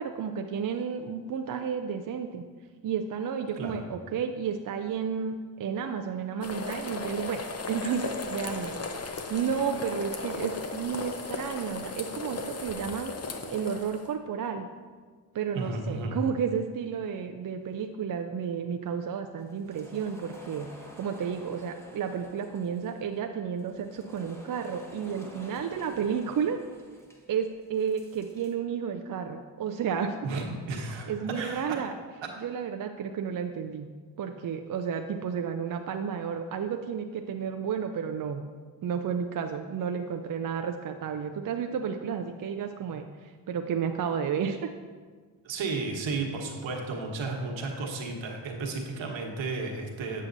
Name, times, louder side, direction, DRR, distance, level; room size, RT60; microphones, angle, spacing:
voice 1, 0.0-2.4 2.8-7.4 7.7-13.2 13.5-14.7 15.3-20.7 20.9-26.6 27.3-30.2 31.1-31.9 32.4-33.9 34.2-38.4 38.8-44.7, right 7 dB, 45° right, 5 dB, 0.5 m, -32 dB
sound 1, 6.4-14.1, left 4 dB, 30° left, 0.8 m, -36 dB
voice 2, 15.5-16.1 30.2-31.8 45.4-50.3, right 3 dB, 65° right, 1 dB, 1.3 m, -33 dB
sound 2, 19.4-28.5, left 1 dB, 5° left, 1.3 m, -50 dB
7.4 x 7.3 x 2.6 m, 1.5 s
supercardioid pair, 50°, 49 cm